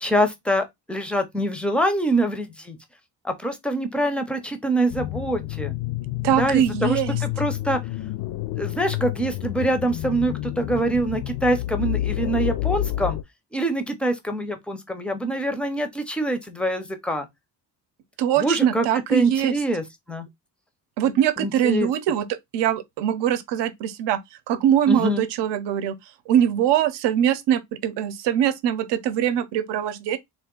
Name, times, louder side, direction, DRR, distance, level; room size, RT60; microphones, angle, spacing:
voice 1, 0.0-2.8 3.2-5.7 6.4-7.8 8.5-13.2 13.5-17.3 18.4-18.8 19.1-20.3 21.4-21.9 24.9-25.2, right 1 dB, 5° left, 0.5 m, -24 dB
sound 1, 4.9-13.2, left 14 dB, 65° left, 0.5 m, -29 dB
voice 2, 6.2-7.2 18.2-19.6 21.0-24.2 24.5-26.0 26.3-30.2, right 10 dB, 75° right, 0.8 m, -22 dB
3.7 x 2.5 x 3.7 m
cardioid pair, 160°, 42 cm